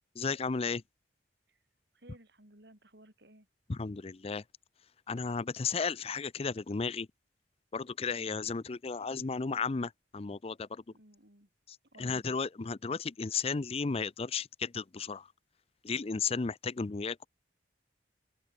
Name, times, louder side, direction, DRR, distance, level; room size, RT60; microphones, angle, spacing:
voice 1, 0.2-0.8 3.7-4.4 5.1-7.1 7.7-10.8 12.0-15.3 15.8-17.3, left 5 dB, 30° left, 0.5 m, -34 dB
voice 2, 1.9-3.5 8.1-8.4 10.9-11.5 11.9-12.2, right 1 dB, 60° right, 4.9 m, -58 dB
open air
head